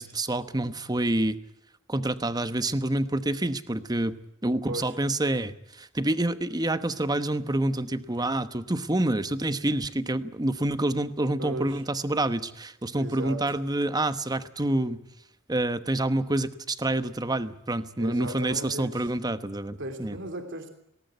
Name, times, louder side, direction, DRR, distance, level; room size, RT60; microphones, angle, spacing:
voice 1, 0.0-1.4 1.9-4.2 4.4-15.0 15.5-20.2, right 1 dB, 20° right, 12 dB, 1.0 m, -27 dB
voice 2, 11.4-11.8 12.9-13.4 18.0-19.0 19.8-20.7, right 1 dB, 60° right, 5 dB, 3.0 m, -36 dB
19.0 x 18.5 x 9.4 m, 0.78 s
head